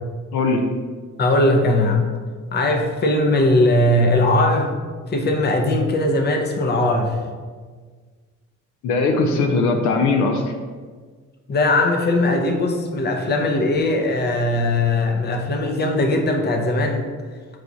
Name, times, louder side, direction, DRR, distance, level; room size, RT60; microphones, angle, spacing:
voice 1, 0.3-0.6 8.8-10.5, left 3 dB, 80° left, 4 dB, 0.5 m, -19 dB
voice 2, 1.2-2.1 2.5-4.8 5.1-7.2 11.5-17.1, left 1 dB, 35° left, 3 dB, 0.6 m, -19 dB
4.8 x 2.3 x 4.0 m, 1.5 s
cardioid pair, 90°, 30 cm